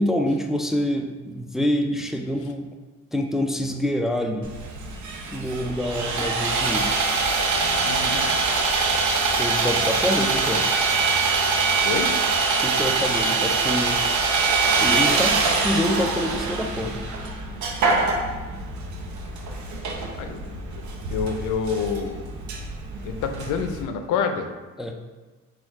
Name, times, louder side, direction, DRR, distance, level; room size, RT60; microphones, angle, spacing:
voice 1, 0.0-2.7 3.1-4.5 5.3-7.0 9.3-10.6 12.6-14.0 14.8-17.0 24.8-24.9, equal, ahead, 3 dB, 0.3 m, -26 dB
Sawing, 4.4-23.8, right 4 dB, 70° right, 0.7 m, -24 dB
voice 2, 7.8-8.3 11.8-12.1 20.2-20.8 21.1-22.2 23.1-24.5, left 6 dB, 90° left, 6 dB, 0.5 m, -28 dB
4.4 x 2.3 x 4.5 m, 1.3 s
cardioid pair, 90°, 30 cm